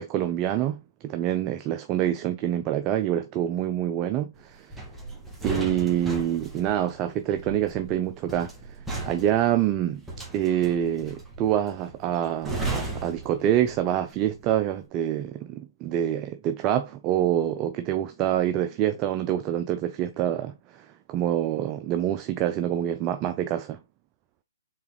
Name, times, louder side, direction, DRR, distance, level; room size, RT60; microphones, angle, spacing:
voice 1, 0.0-4.7 5.4-10.0 10.3-23.8, right 11 dB, 25° right, 0.5 m, -26 dB
sound 1, 4.7-14.0 14.3-14.6, right 2 dB, 5° right, 2.0 m, -35 dB
6.2 x 4.1 x 4.0 m
hypercardioid pair, 145°, 2 cm